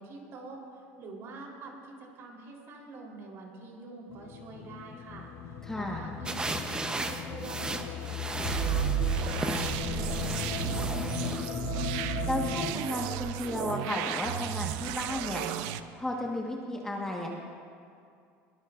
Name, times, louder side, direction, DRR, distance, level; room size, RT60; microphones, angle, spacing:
voice 1, 0.0-11.5, right 3 dB, 50° right, -1 dB, 3.8 m, -46 dB
sound 1, 4.1-12.7, left 8 dB, 45° left, 0.7 m, -37 dB
voice 2, 5.6-6.0 12.3-15.4 16.0-17.4, left 1 dB, 10° left, -2 dB, 1.5 m, -33 dB
sound 2, 6.2-11.6, right 3 dB, 15° right, 0.9 m, -36 dB
sound 3, 8.4-15.8, right 12 dB, 80° right, 0.6 m, -33 dB
22.0 x 20.0 x 2.6 m, 2.3 s
cardioid pair, 140°, 6 cm